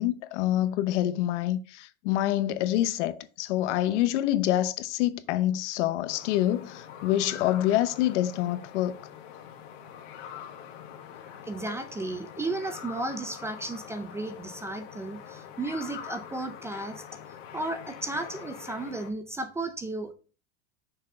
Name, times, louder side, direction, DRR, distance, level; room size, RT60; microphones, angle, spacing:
voice 1, 0.0-8.9, left 13 dB, 80° left, 0.8 m, -26 dB
sound 1, 6.1-19.1, left 9 dB, 65° left, 1.6 m, -44 dB
voice 2, 11.5-17.0 17.5-20.1, right 2 dB, 10° right, 0.4 m, -34 dB
6.4 x 4.4 x 4.9 m
supercardioid pair, 155°, 35 cm